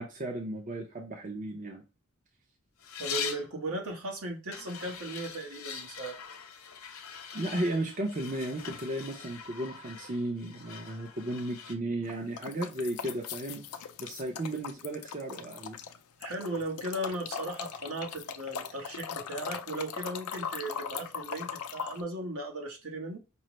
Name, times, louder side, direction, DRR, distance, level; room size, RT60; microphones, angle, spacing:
voice 1, 0.0-1.8 7.3-13.6 14.0-15.8, right 1 dB, 35° right, 0.6 m, -34 dB
sound 1, 2.8-3.5 4.5-11.7, left 7 dB, 65° left, 0.9 m, -42 dB
voice 2, 3.0-6.2 16.2-23.2, right 1 dB, 75° right, 1.2 m, -37 dB
sound 2, 12.0-16.0 16.2-22.0, left 7 dB, 85° left, 0.5 m, -40 dB
5.4 x 2.0 x 3.0 m
head